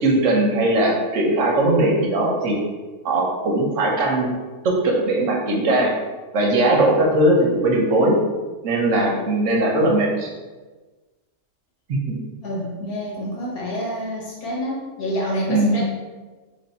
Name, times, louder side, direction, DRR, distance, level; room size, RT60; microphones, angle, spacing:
voice 1, 0.0-2.6 3.0-4.3 4.6-5.9 6.3-8.2 8.6-10.3 11.9-12.2 15.5-15.8, right 1 dB, 60° right, -1 dB, 1.0 m, -19 dB
voice 2, 12.4-15.8, equal, 80° left, -4 dB, 1.6 m, -27 dB
3.3 x 2.6 x 4.1 m, 1.3 s
omnidirectional pair, 1.6 m